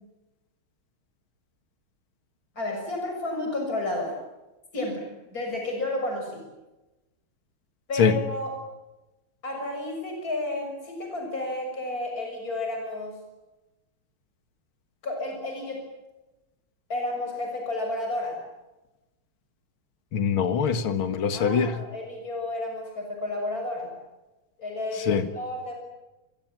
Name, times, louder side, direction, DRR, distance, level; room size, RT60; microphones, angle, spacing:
voice 1, 2.6-4.1 4.7-5.0 5.3-6.4 7.9-8.5 9.4-13.2 15.0-15.8 16.9-18.4 21.3-23.9 24.6-25.7, left 2 dB, 40° left, 2 dB, 7.1 m, -31 dB
voice 2, 20.1-21.8 25.1-25.3, left 6 dB, 75° left, 9 dB, 2.5 m, -23 dB
27.5 x 23.0 x 9.0 m, 1.0 s
omnidirectional pair, 2.3 m